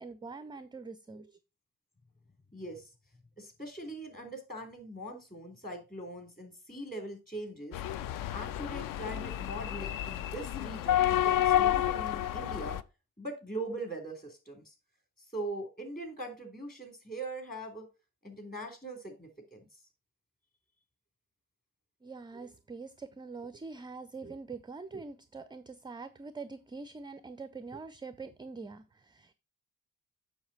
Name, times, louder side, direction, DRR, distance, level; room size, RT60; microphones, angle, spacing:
voice 1, 0.0-1.4 22.0-29.3, right 4 dB, 10° right, 0.4 m, -44 dB
voice 2, 2.5-2.9 3.4-7.8 8.3-12.8 13.2-14.7 15.3-17.9 18.2-19.7, right 1 dB, 20° left, 3.4 m, -41 dB
sound 1, 7.7-12.8, left 12 dB, 50° left, 0.5 m, -30 dB
7.1 x 6.4 x 4.2 m
figure-of-eight pair, 40°, 43 cm